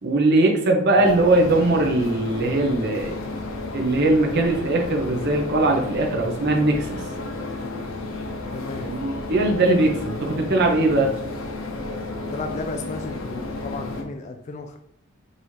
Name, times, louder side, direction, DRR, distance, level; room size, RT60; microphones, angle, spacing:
voice 1, 0.0-3.1 3.7-7.0 8.8-11.1, right 2 dB, 55° right, 1 dB, 0.8 m, -20 dB
sound 1, 1.0-14.0, left 2 dB, 70° left, 0.8 m, -32 dB
voice 2, 8.5-8.9 10.4-10.5 10.8-11.0 12.2-14.8, left 3 dB, 35° left, 5 dB, 0.3 m, -34 dB
5.3 x 2.7 x 3.2 m, 0.71 s
head